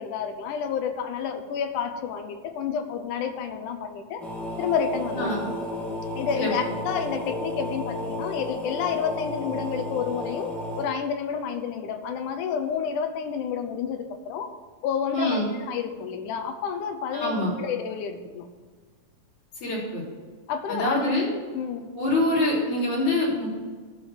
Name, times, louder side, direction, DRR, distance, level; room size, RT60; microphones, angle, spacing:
voice 1, 0.0-4.2 4.6-5.4 6.1-14.6 14.8-18.5 20.5-21.1 21.6-21.9, left 7 dB, 75° left, 7 dB, 2.1 m, -30 dB
sound 1, 4.2-10.8, left 1 dB, ahead, 0.3 m, -33 dB
voice 2, 5.1-5.4 6.3-6.5 15.1-15.5 17.1-17.6 19.6-20.0 20.7-21.3 22.0-23.5, left 1 dB, 55° left, -5 dB, 4.8 m, -25 dB
12.5 x 4.9 x 8.2 m, 1.5 s
omnidirectional pair, 4.0 m